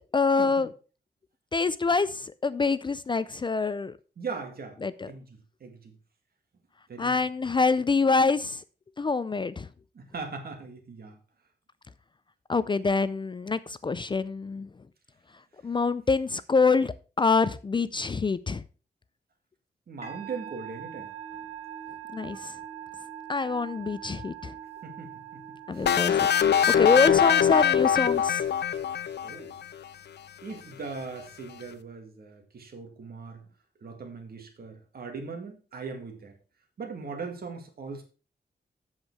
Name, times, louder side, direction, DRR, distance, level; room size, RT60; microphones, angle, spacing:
voice 1, 0.1-0.7 1.5-3.9 4.8-5.1 7.0-8.6 9.0-9.7 12.5-14.7 15.6-18.6 22.1-22.5 23.3-24.5 25.7-26.5 26.8-28.4, left 4 dB, 30° left, 0.4 m, -26 dB
voice 2, 4.2-4.8 5.1-5.9 6.9-7.2 9.9-11.2 19.9-21.1 24.8-25.4 25.7-25.9 29.2-29.5 30.4-33.5 33.8-36.4 36.8-38.0, right 4 dB, 60° right, 2.1 m, -39 dB
Musical instrument, 20.0-27.6, right 9 dB, 40° right, 2.4 m, -43 dB
sound 1, 25.9-29.6, left 8 dB, 80° left, 0.6 m, -22 dB
8.0 x 7.3 x 4.7 m
wide cardioid pair, 170°, 17 cm